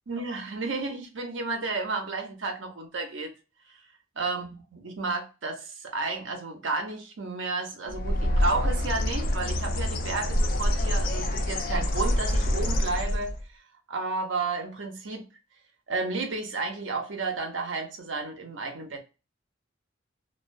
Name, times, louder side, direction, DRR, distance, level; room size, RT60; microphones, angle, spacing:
voice 1, 0.1-3.3 4.2-13.4 13.9-15.3 15.9-19.0, right 3 dB, 80° right, 0.8 m, -32 dB
Bird, 7.9-13.4, equal, 50° left, 0.4 m, -26 dB
2.4 x 2.3 x 2.4 m
head